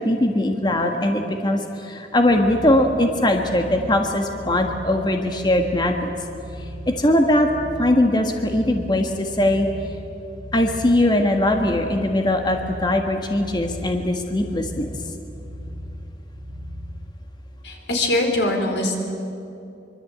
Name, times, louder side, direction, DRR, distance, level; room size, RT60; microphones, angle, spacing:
voice 1, 0.0-6.1 6.6-7.5 7.8-9.7 10.5-14.9, left 1 dB, 25° left, 4 dB, 1.6 m, -20 dB
sound 1, 2.1-17.1, equal, 50° right, 2.7 m, -37 dB
voice 2, 17.6-19.0, left 1 dB, 85° left, 3 dB, 4.4 m, -22 dB
24.5 x 24.0 x 8.7 m, 2.7 s
head